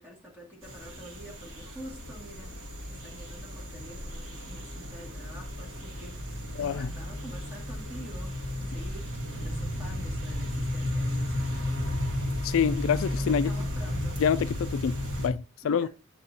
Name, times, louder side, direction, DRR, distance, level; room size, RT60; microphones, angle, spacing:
voice 1, 0.0-12.0 13.1-14.2 15.6-15.9, equal, 10° right, 2.0 m, -47 dB
sound 1, 0.6-15.3, left 1 dB, 65° right, 2.4 m, -34 dB
sound 2, 2.5-15.1, equal, 85° right, 3.3 m, -46 dB
voice 2, 6.6-6.9 12.4-13.5 14.2-15.9, left 7 dB, 65° left, 0.3 m, -27 dB
8.4 x 5.9 x 2.7 m
head